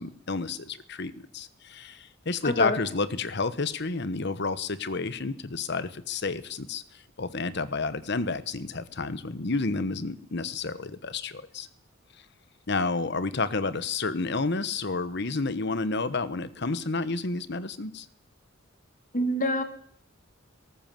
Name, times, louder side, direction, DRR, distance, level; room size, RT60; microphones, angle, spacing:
voice 1, 0.0-6.8 7.2-11.7 12.7-18.1, left 3 dB, 60° left, 14 dB, 1.2 m, -30 dB
voice 2, 2.4-2.8 19.1-19.6, left 1 dB, 45° left, 7 dB, 2.4 m, -25 dB
19.0 x 18.0 x 7.6 m, 0.65 s
head